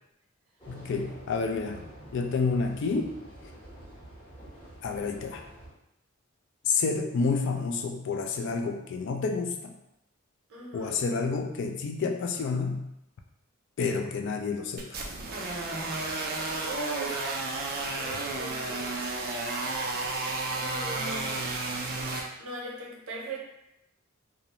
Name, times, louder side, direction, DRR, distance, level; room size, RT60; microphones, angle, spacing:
Atmo Paris Subway, 0.6-5.7, right 1 dB, 20° left, 1.0 m, -48 dB
voice 1, 0.7-1.9 2.1-3.1 4.8-5.4 6.6-9.7 10.7-12.9 13.8-14.9, left 4 dB, 55° left, 4 dB, 0.3 m, -29 dB
voice 2, 10.5-10.9 16.6-17.4 18.0-18.9 20.5-21.7 22.4-23.4, right 2 dB, 90° right, -1 dB, 0.7 m, -39 dB
sound 1, 14.8-22.2, right 2 dB, 45° right, 0.4 m, -32 dB
2.4 x 2.0 x 2.8 m, 0.84 s
head